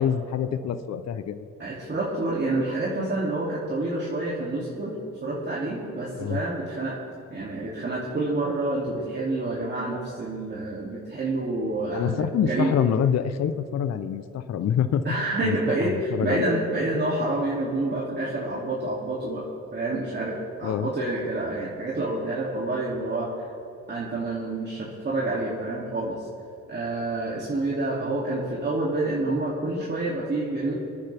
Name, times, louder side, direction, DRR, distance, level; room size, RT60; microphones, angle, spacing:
voice 1, 0.0-1.5 6.2-6.4 11.9-15.2 15.4-15.6 15.8-16.5 20.6-20.9, left 8 dB, 60° left, 11 dB, 0.8 m, -26 dB
voice 2, 1.6-5.0 5.2-7.0 7.3-12.8 15.0-23.5 23.9-26.3 26.7-30.7, right 2 dB, 35° right, -6 dB, 2.8 m, -28 dB
25.0 x 9.9 x 3.5 m, 2.7 s
cardioid pair, 90°, 30 cm